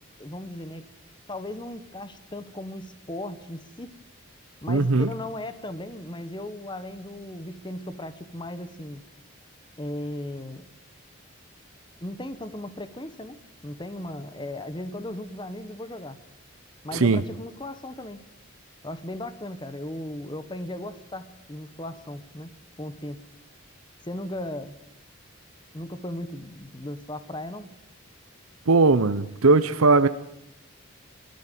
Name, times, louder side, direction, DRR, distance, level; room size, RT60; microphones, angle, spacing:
voice 1, 0.2-0.8 1.3-3.9 4.6-9.0 9.8-10.6 12.0-16.2 16.8-18.2 18.8-22.5 22.8-23.2 24.0-24.8 25.7-27.7, left 1 dB, 20° left, 12 dB, 1.0 m, -36 dB
voice 2, 4.7-5.1 16.9-17.2 28.7-30.1, right 3 dB, 85° right, 12 dB, 0.8 m, -19 dB
23.5 x 13.5 x 9.2 m, 0.81 s
head